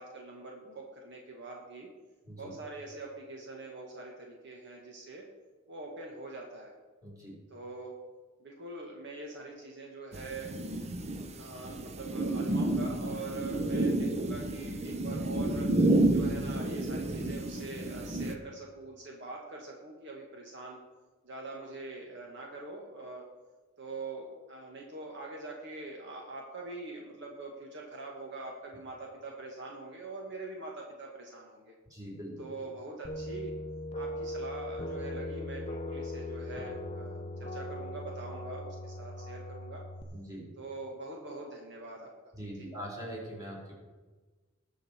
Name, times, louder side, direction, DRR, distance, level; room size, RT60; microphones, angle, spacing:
voice 1, 0.0-1.9 2.4-5.2 5.7-6.7 7.5-7.9 8.4-10.5 11.3-15.7 16.1-20.8 21.2-23.2 23.8-31.7 32.4-33.5 33.9-39.8 40.6-42.1 42.6-42.7, right 2 dB, 60° right, -1 dB, 1.7 m, -43 dB
voice 2, 7.0-7.4 31.9-32.5 40.1-40.5 42.3-43.7, equal, 15° right, -3 dB, 4.1 m, -42 dB
sound 1, 10.1-18.4, right 2 dB, 35° right, 0.8 m, -30 dB
sound 2, 33.0-40.0, left 1 dB, 30° left, 0.7 m, -39 dB
19.5 x 6.6 x 4.4 m, 1.3 s
head